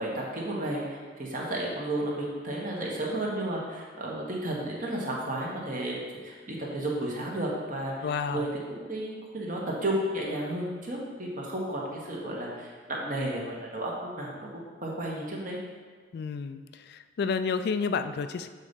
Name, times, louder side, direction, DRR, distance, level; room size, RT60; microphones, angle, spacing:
voice 1, 0.0-6.0 6.2-15.6, right 1 dB, 45° right, -3 dB, 1.3 m, -33 dB
voice 2, 8.0-8.5 16.1-16.6 17.2-18.5, left 5 dB, 55° left, 10 dB, 0.3 m, -29 dB
7.2 x 4.1 x 5.3 m, 1.5 s
head